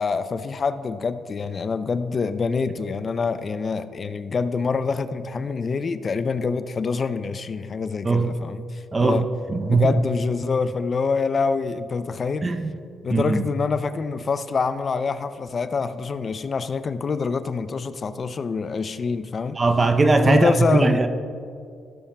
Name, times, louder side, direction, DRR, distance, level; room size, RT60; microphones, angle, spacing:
voice 1, 0.0-9.2 9.7-12.5 13.0-19.6 20.3-21.0, left 4 dB, 40° left, 12 dB, 0.4 m, -26 dB
voice 2, 8.0-8.4 8.9-9.2 9.5-10.0 12.4-12.7 13.1-13.5 19.6-21.1, right 3 dB, 30° right, 7 dB, 0.6 m, -20 dB
16.0 x 7.0 x 2.2 m, 2.4 s
cardioid pair, 90°, 0 cm